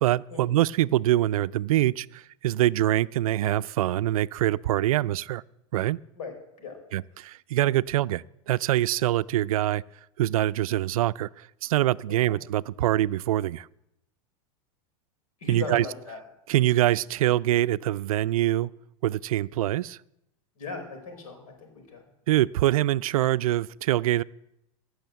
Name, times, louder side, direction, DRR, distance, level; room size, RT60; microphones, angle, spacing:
voice 1, 0.0-5.4 5.7-6.0 6.9-9.8 10.2-13.7 15.5-15.9 16.5-18.7 19.0-20.0 22.3-24.2, right 14 dB, 85° right, 0.4 m, -24 dB
voice 2, 15.4-16.2 20.6-22.0, left 4 dB, 85° left, 4.9 m, -38 dB
17.0 x 6.5 x 8.0 m
supercardioid pair, 130°, 18 cm